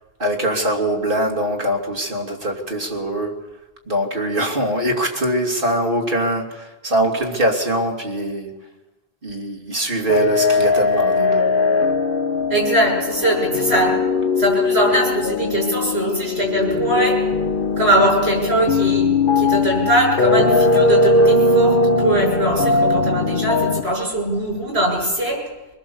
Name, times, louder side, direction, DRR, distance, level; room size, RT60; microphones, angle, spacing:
voice 1, 0.2-3.4 3.9-8.5 9.2-11.5, right 1 dB, 60° right, 1 dB, 3.3 m, -22 dB
sound 1, 10.1-23.8, left 3 dB, 60° left, 1.4 m, -19 dB
voice 2, 12.5-13.9 14.4-17.1 17.8-19.1 19.3-25.4, right 1 dB, 85° right, 1 dB, 6.8 m, -20 dB
23.5 x 20.5 x 7.2 m, 1.1 s
omnidirectional pair, 1.0 m